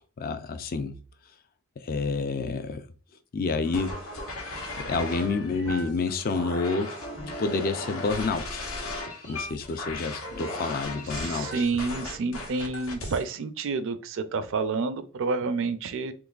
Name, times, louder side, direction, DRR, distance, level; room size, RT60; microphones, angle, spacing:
voice 1, 0.2-0.9 1.8-2.9 3.3-4.0 4.8-6.9 7.4-8.7 9.3-11.6, left 4 dB, 45° left, 0.4 m, -29 dB
sound 1, 3.6-13.2, left 1 dB, 80° left, 1.2 m, -36 dB
voice 2, 11.1-16.1, right 4 dB, 65° right, 0.4 m, -29 dB
3.8 x 2.9 x 2.4 m
head